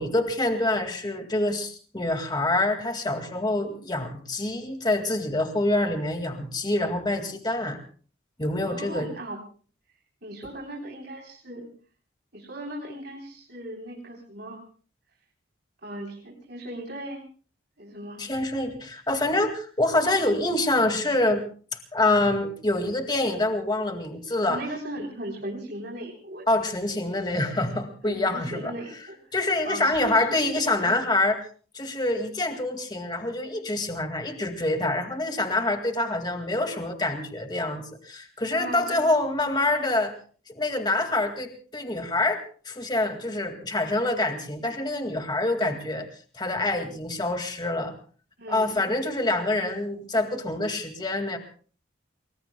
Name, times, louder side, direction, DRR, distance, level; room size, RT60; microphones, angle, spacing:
voice 1, 0.0-7.8 8.4-9.1 18.2-21.4 21.9-24.6 26.5-28.7 29.3-31.4 31.7-40.1 40.5-46.1 46.3-48.0 48.5-51.4, left 2 dB, 20° left, 5 dB, 2.1 m, -26 dB
voice 2, 8.7-9.4 10.2-11.7 12.3-14.6 15.8-17.2 17.8-18.2 22.1-22.3 24.5-26.4 28.0-29.2 29.6-30.5 30.9-31.0 38.5-39.0 48.4-48.8, right 1 dB, 55° right, -1 dB, 3.6 m, -37 dB
29.5 x 21.5 x 2.3 m, 0.41 s
head